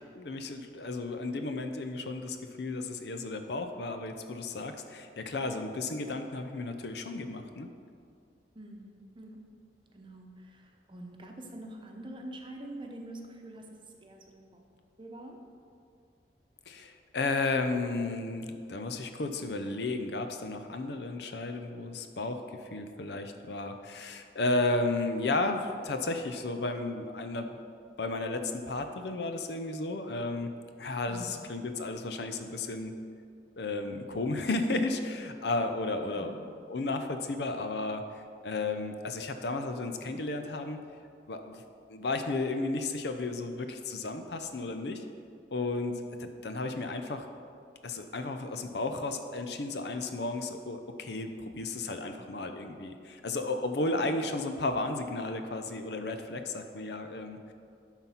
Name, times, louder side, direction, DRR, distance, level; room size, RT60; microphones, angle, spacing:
voice 1, 0.1-7.7 16.7-27.5 28.0-30.5 30.8-33.0 33.6-36.3 36.7-38.0 38.4-40.8 41.3-41.6 41.9-45.0 45.5-47.2 47.8-57.5, left 2 dB, 65° left, 7 dB, 0.6 m, -33 dB
voice 2, 8.5-9.4 9.9-14.7 15.0-15.4 31.1-31.5 36.0-36.4 53.9-54.1, right 1 dB, 30° right, 2 dB, 0.9 m, -45 dB
11.5 x 4.0 x 5.7 m, 2.3 s
head